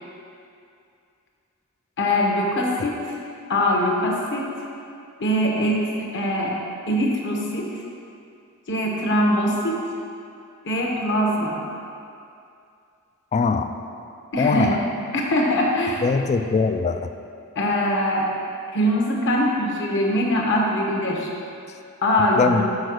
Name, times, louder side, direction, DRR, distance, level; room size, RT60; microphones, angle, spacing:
voice 1, 2.0-3.2 3.5-4.5 5.2-6.5 6.9-7.7 8.7-9.8 10.6-11.6 14.3-14.8 15.1-16.2 17.5-18.3 18.7-21.3 22.0-22.6, equal, 55° left, -1 dB, 1.2 m, -22 dB
voice 2, 13.3-13.7 14.4-14.7 16.0-17.1 22.4-22.6, left 4 dB, 30° left, 8 dB, 0.3 m, -21 dB
6.4 x 4.6 x 6.3 m, 2.5 s
head